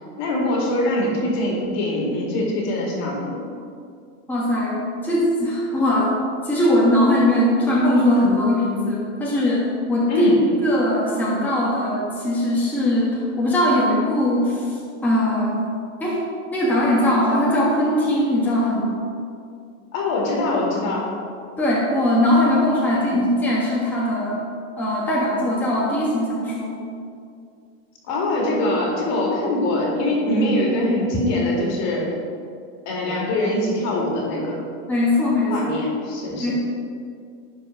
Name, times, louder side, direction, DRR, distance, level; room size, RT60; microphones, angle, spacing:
voice 1, 0.2-3.4 10.1-10.4 19.9-21.1 23.1-23.2 28.0-32.1 32.9-34.6 35.5-36.5, left 1 dB, 45° left, -2 dB, 2.4 m, -23 dB
voice 2, 4.3-6.1 6.4-10.3 10.6-14.8 15.0-15.7 16.0-16.2 16.5-18.9 21.6-24.4 24.8-26.8 34.9-35.5 36.3-36.5, left 1 dB, 5° left, -7 dB, 1.4 m, -20 dB
11.0 x 4.8 x 5.6 m, 2.3 s
supercardioid pair, 155°, 37 cm